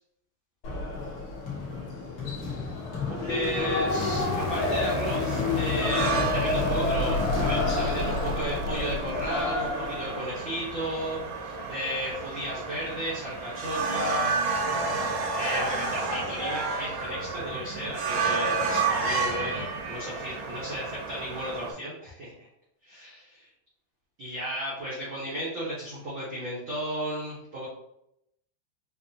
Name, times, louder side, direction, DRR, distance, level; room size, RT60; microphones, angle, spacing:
sound 1, 0.6-10.2, left 2 dB, 65° left, 1.2 m, -30 dB
voice 1, 3.2-14.3 15.4-22.5 22.8-23.5 24.2-27.7, equal, 70° right, -7 dB, 1.1 m, -34 dB
sound 2, 3.6-21.7, right 4 dB, 90° right, 2.3 m, -32 dB
sound 3, 3.9-10.0, left 3 dB, 80° left, 1.8 m, -32 dB
5.2 x 2.6 x 2.7 m, 0.79 s
omnidirectional pair, 3.6 m